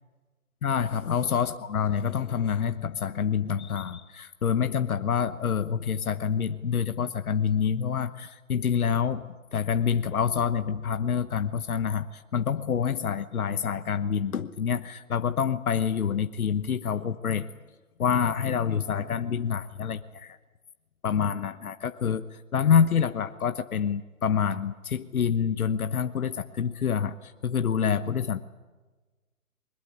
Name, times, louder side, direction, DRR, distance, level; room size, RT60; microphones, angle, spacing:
voice 1, 0.6-17.5 18.0-20.4 21.0-28.4, left 7 dB, 85° left, 10 dB, 1.1 m, -27 dB
22.0 x 21.0 x 9.6 m, 1.3 s
hypercardioid pair, 150°, 42 cm